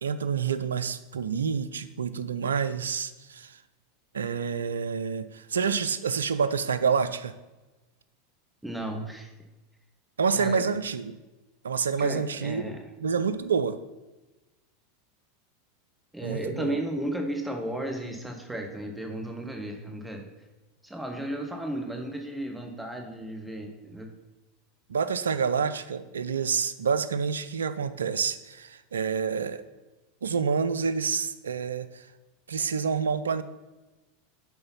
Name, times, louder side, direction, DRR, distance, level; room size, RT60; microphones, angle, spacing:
voice 1, 0.0-3.6 4.1-7.3 10.2-11.2 11.6-12.7 13.0-13.8 16.2-16.8 24.9-29.6 30.2-32.1 32.5-33.4, right 6 dB, 80° right, 13 dB, 0.4 m, -28 dB
voice 2, 8.6-9.3 10.3-10.7 12.0-12.8 16.1-20.3 20.8-24.1, right 1 dB, 5° right, 2 dB, 1.4 m, -34 dB
8.0 x 3.9 x 5.6 m, 1.1 s
hypercardioid pair, 90°, 0 cm